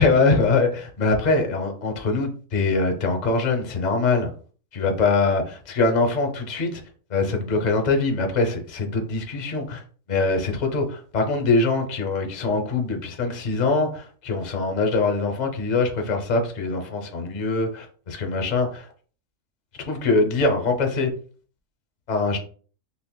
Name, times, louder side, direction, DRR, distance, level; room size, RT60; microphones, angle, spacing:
voice 1, 0.0-4.3 4.7-6.8 7.1-9.8 10.1-18.9 19.8-21.1 22.1-22.4, left 3 dB, 40° left, 4 dB, 0.6 m, -23 dB
5.8 x 2.1 x 2.2 m, 0.42 s
omnidirectional pair, 1.5 m